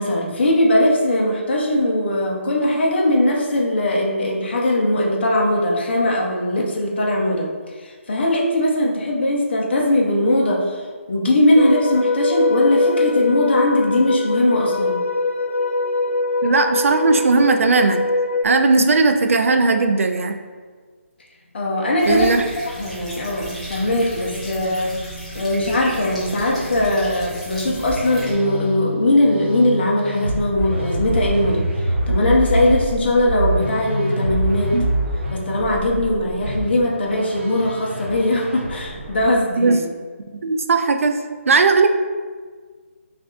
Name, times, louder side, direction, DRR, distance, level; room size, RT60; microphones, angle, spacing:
voice 1, 0.0-7.5 7.8-15.0 21.5-24.9 25.3-31.7 32.1-34.7 35.3-39.8, left 1 dB, 50° left, -2 dB, 0.8 m, -20 dB
sound 1, 11.6-18.4, left 2 dB, 75° left, 0.4 m, -22 dB
voice 2, 16.4-18.0 18.4-20.3 22.0-22.4 34.7-34.8 39.6-39.8 40.4-41.2 41.5-41.9, right 3 dB, 75° right, 6 dB, 0.4 m, -17 dB
sound 2, 22.0-28.3, equal, ahead, 0.4 m, -34 dB
Musical instrument, 27.6-39.4, right 1 dB, 55° right, 0.8 m, -26 dB
5.8 x 2.5 x 2.4 m, 1.5 s
hypercardioid pair, 170°, 7 cm